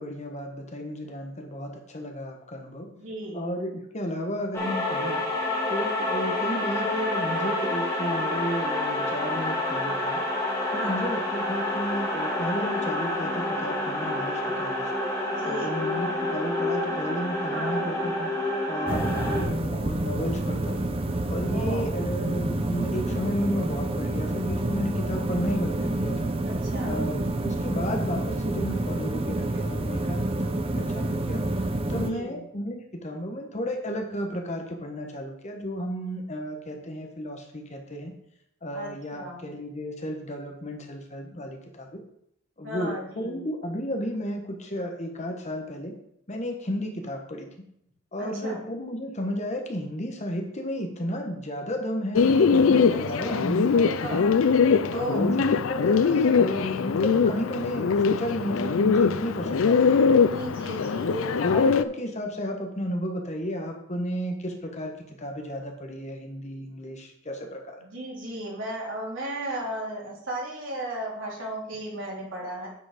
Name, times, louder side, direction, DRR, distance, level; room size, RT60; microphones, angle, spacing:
voice 1, 0.0-2.9 3.3-5.2 5.7-10.2 10.7-14.9 15.4-18.3 18.7-20.9 21.3-26.3 26.8-31.4 31.9-38.1 38.6-42.0 42.6-45.9 46.3-47.5 48.1-54.2 54.9-60.2 61.1-64.9 65.2-67.8, equal, 35° left, 2 dB, 1.3 m, -33 dB
voice 2, 2.9-3.5 10.8-11.0 15.2-15.9 17.5-17.9 18.8-19.4 21.5-22.0 26.4-27.0 31.9-32.4 38.7-39.5 42.6-43.4 48.2-48.6 52.9-54.3 54.9-55.3 60.1-61.1 67.8-72.7, right 1 dB, 70° right, -4 dB, 3.4 m, -35 dB
sound 1, 4.5-19.4, left 1 dB, 15° left, 2.2 m, -28 dB
sound 2, 18.9-32.1, right 1 dB, 30° right, 0.6 m, -28 dB
Bird, 52.2-61.8, left 5 dB, 85° left, 0.5 m, -22 dB
9.7 x 5.2 x 5.1 m, 0.75 s
head